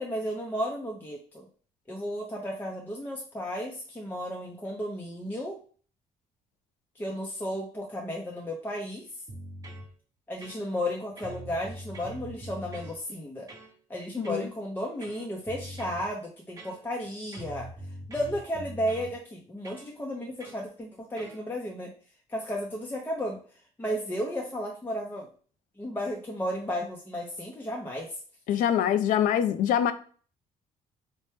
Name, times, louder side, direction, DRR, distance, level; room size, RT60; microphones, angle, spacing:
voice 1, 0.0-1.5 1.9-5.6 7.0-9.1 10.3-13.5 13.9-17.7 18.1-21.9 22.3-23.4 23.8-25.3 25.8-28.2, equal, 15° left, 0.6 m, -33 dB
sound 1, 9.3-9.9 10.4-10.9 11.2-13.0 13.5-13.7 14.2-14.5 15.0-16.1 16.6-17.0 17.3-19.1 19.6-19.9 20.4-20.6 21.2-21.4, right 1 dB, 25° right, 0.9 m, -43 dB
voice 2, 14.2-14.5 28.5-29.9, left 9 dB, 80° left, 0.4 m, -24 dB
4.3 x 2.1 x 3.2 m
cardioid pair, 125°, 14 cm